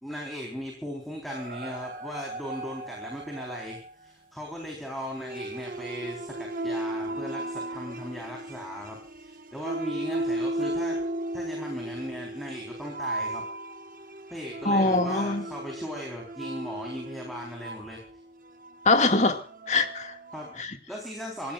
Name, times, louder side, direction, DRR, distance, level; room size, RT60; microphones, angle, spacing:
voice 1, 0.0-11.0 11.3-13.4 14.3-18.0 20.3-20.6 20.9-21.5, equal, ahead, 4.2 m, -38 dB
sound 1, 1.3-3.9 5.1-20.6, right 1 dB, 50° right, 1.6 m, -36 dB
voice 2, 14.7-15.4 18.9-19.4 19.7-20.2 20.6-20.8, left 2 dB, 40° left, 2.1 m, -23 dB
27.5 x 16.0 x 2.5 m
head